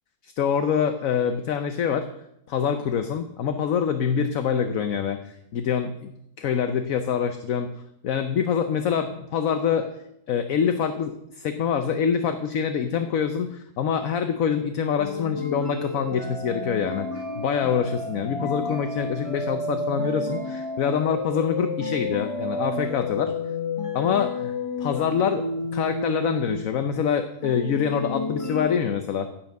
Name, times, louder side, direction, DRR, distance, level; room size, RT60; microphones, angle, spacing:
voice 1, 0.2-2.1 2.5-6.1 6.4-7.7 8.0-9.9 10.3-23.3 23.9-24.5 24.8-25.5 25.7-29.3, left 7 dB, 65° left, 7 dB, 1.1 m, -25 dB
sound 1, 15.0-27.0 27.4-28.8, left 3 dB, 20° left, 1.3 m, -31 dB
16.0 x 5.9 x 6.4 m, 0.80 s
omnidirectional pair, 1.6 m